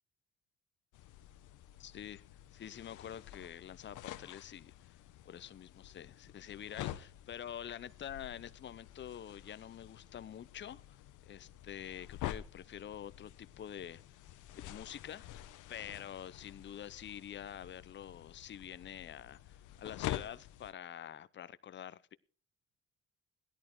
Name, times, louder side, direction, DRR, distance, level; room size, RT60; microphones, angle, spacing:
sound 1, 0.9-20.7, left 13 dB, 85° left, 0.9 m, -48 dB
voice 1, 1.8-2.2 2.5-4.9 5.3-11.0 11.3-14.0 14.6-22.1, left 9 dB, 40° left, 0.6 m, -47 dB
16.0 x 11.0 x 4.6 m
cardioid pair, 90°, 30 cm